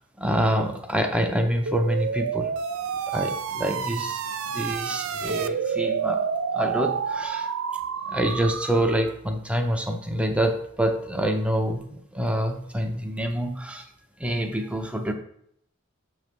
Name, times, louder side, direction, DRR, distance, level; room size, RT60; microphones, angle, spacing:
voice 1, 0.0-2.5 3.1-6.3 6.5-7.5 8.1-13.9 14.2-15.1, right 1 dB, 5° right, 4 dB, 0.5 m, -26 dB
sound 1, 1.7-9.1, right 6 dB, 75° right, 0.4 m, -29 dB
6.8 x 3.2 x 5.2 m, 0.71 s
head